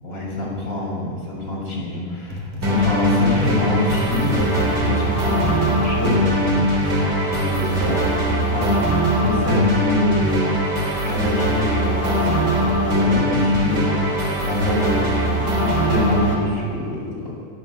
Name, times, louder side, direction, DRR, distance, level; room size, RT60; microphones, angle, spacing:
voice 1, 0.0-10.8 11.0-14.2 14.4-17.4, left 1 dB, 25° left, -3 dB, 6.6 m, -26 dB
sound 1, 2.3-11.1 13.5-13.8, left 2 dB, 60° right, 4.0 m, -32 dB
sound 2, 2.6-16.3, equal, 30° right, 3.8 m, -21 dB
26.0 x 12.5 x 9.0 m, 2.1 s
omnidirectional pair, 3.9 m